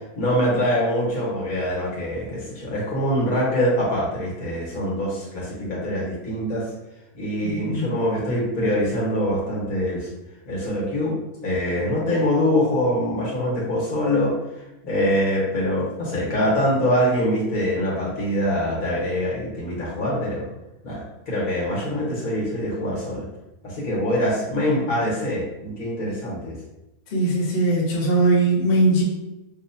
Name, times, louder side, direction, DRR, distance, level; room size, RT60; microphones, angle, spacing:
voice 1, 0.1-6.7 7.1-10.1 10.4-11.1 11.4-14.3 14.8-20.5 20.8-23.2 23.6-26.6, equal, 75° left, -6 dB, 1.7 m, -24 dB
voice 2, 7.4-8.0 27.1-29.0, right 2 dB, 50° left, -5 dB, 0.9 m, -20 dB
5.1 x 2.1 x 2.7 m, 0.95 s
omnidirectional pair, 1.5 m